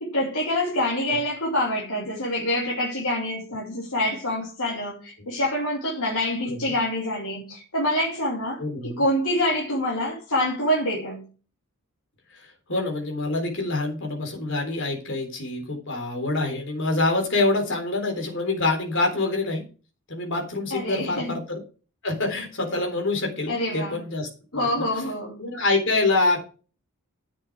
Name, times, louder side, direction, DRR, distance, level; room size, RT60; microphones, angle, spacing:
voice 1, 0.0-11.3 20.7-21.4 23.5-24.0 24.5-25.4, left 1 dB, 75° left, 2.9 m, -26 dB
voice 2, 8.6-9.0 12.4-19.6 20.1-21.6 22.0-24.7 25.4-26.4, left 2 dB, 55° left, 3.9 m, -26 dB
11.0 x 8.4 x 4.8 m
head